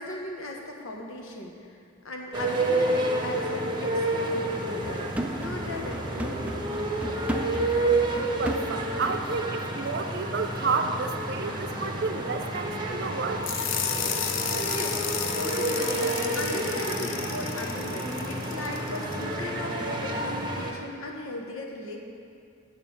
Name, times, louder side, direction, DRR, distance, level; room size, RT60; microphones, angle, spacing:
voice 1, 0.0-1.8 2.0-5.1 5.3-6.6 14.7-15.0 15.3-15.9 16.3-22.0, left 2 dB, 85° left, 0 dB, 1.3 m, -37 dB
sound 1, 2.3-20.7, right 2 dB, 25° right, 0.8 m, -30 dB
sound 2, 4.8-9.4 9.7-9.9, right 1 dB, 5° right, 0.4 m, -35 dB
voice 2, 8.4-13.5, right 4 dB, 55° right, 6 dB, 0.6 m, -31 dB
sound 3, 13.4-19.2, left 8 dB, 65° left, 0.6 m, -32 dB
9.2 x 5.0 x 7.2 m, 2.3 s
head